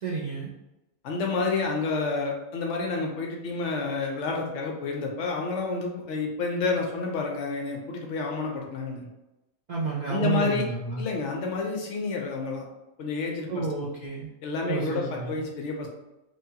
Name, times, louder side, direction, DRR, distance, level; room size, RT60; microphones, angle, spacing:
voice 1, 0.0-0.5 9.7-11.1 13.5-14.3 14.7-15.4, right 4 dB, 85° right, -5 dB, 0.3 m, -30 dB
voice 2, 1.0-9.1 10.1-10.6 11.0-12.6 13.0-13.7 14.4-15.9, left 4 dB, 65° left, 0 dB, 0.8 m, -29 dB
3.1 x 2.2 x 2.7 m, 0.96 s
omnidirectional pair, 1.5 m